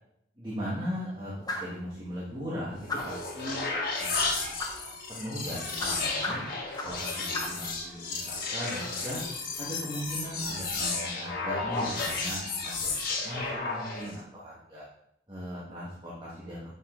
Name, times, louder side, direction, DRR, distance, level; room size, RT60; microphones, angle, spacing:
voice 1, 0.4-1.3 1.6-6.4 6.8-9.2 9.6-12.9 13.2-14.8 15.3-16.8, equal, 25° right, -8 dB, 1.7 m, -38 dB
sound 1, 1.5-1.8 2.9-3.3 4.6-4.8 5.8-7.1 7.3-7.6, left 2 dB, 20° left, 1.0 m, -35 dB
sound 2, 2.7-14.2, left 3 dB, 55° left, 1.6 m, -33 dB
8.4 x 5.5 x 3.9 m, 0.77 s
head